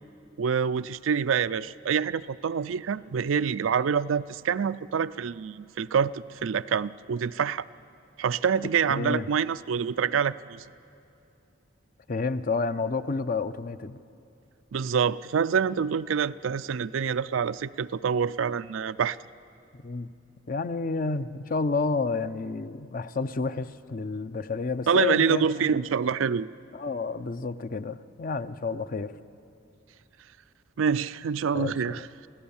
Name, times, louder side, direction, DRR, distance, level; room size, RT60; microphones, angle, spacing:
voice 1, 0.4-7.6 8.2-10.6 14.7-19.2 24.9-26.5 30.8-32.0, right 6 dB, 85° right, 14 dB, 0.4 m, -26 dB
voice 2, 8.9-9.3 12.1-14.0 19.7-20.1 20.5-25.8 26.7-29.1 31.5-32.1, left 4 dB, 45° left, 12 dB, 0.6 m, -30 dB
28.0 x 16.5 x 7.1 m, 2.6 s
head